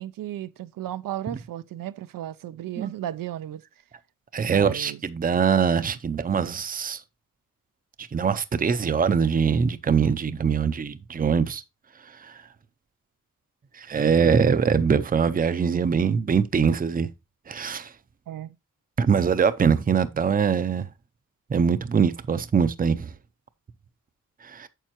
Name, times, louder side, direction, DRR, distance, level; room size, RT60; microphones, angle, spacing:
voice 1, 0.0-3.6 4.4-5.0 5.8-6.0 18.3-18.6, right 12 dB, 80° right, 0.5 m, -35 dB
voice 2, 4.3-7.0 8.1-11.6 12.2-12.3 13.8-17.1 17.5-17.9 19.0-20.9 21.5-23.1 24.5-24.7, right 6 dB, 25° right, 0.5 m, -23 dB
9.1 x 6.8 x 3.0 m
wide cardioid pair, 110°, 33 cm